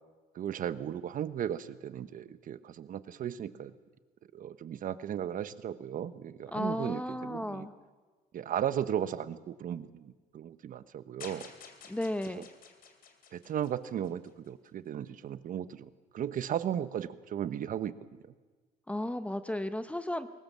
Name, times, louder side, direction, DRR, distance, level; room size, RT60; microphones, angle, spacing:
voice 1, 0.3-3.7 4.3-7.7 8.3-11.5 12.4-12.5 13.3-17.9, right 10 dB, 55° right, 14 dB, 1.0 m, -36 dB
voice 2, 6.5-7.7 11.9-12.5 18.9-20.3, left 1 dB, 5° left, 10 dB, 0.9 m, -34 dB
sound 1, 11.2-14.5, left 6 dB, 60° left, 3.2 m, -51 dB
23.0 x 19.0 x 7.4 m, 1.4 s
cardioid pair, 110°, 17 cm